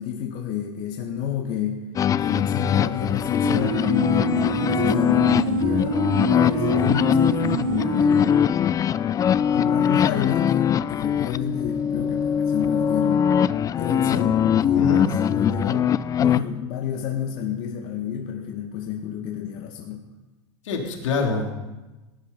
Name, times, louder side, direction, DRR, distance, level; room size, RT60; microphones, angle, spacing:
voice 1, 0.0-1.8 2.2-8.3 9.0-9.2 9.5-13.3 13.7-15.9 16.2-20.0, left 9 dB, 50° left, 1 dB, 1.9 m, -29 dB
sound 1, 1.9-16.4, left 9 dB, 20° left, 0.4 m, -22 dB
sound 2, 3.4-8.7, right 5 dB, 80° right, 1.7 m, -27 dB
voice 2, 14.7-15.1 20.6-21.5, left 4 dB, 80° left, 1 dB, 3.4 m, -25 dB
17.5 x 11.0 x 5.6 m, 1.1 s
hypercardioid pair, 115°, 16 cm